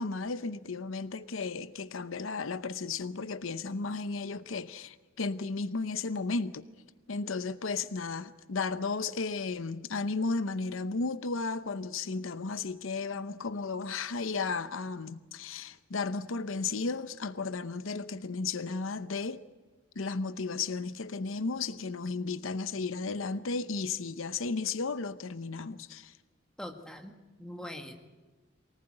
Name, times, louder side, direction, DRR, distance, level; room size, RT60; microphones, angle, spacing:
voice 1, 0.0-6.7 7.1-19.4 20.0-26.1, left 4 dB, 80° left, 0.8 m, -34 dB
voice 2, 26.6-27.9, left 1 dB, 5° left, 1.7 m, -43 dB
24.0 x 18.5 x 8.9 m
head